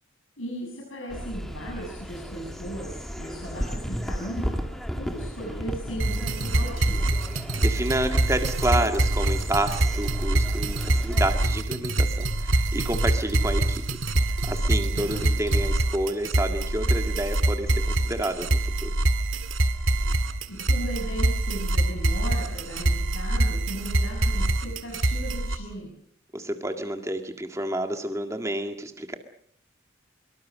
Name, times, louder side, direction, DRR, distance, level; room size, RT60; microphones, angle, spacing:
voice 1, 0.4-4.6 5.0-7.0 15.0-15.3 20.5-25.9, right 1 dB, 90° left, 0 dB, 6.9 m, -37 dB
sound 1, 1.1-11.3, equal, ahead, 2.1 m, -35 dB
sound 2, 6.0-25.6, right 1 dB, 80° right, 2.0 m, -25 dB
voice 2, 7.4-14.0 14.4-18.9 26.3-29.2, right 1 dB, 15° right, 5 dB, 2.0 m, -29 dB
24.5 x 23.5 x 6.4 m, 0.64 s
head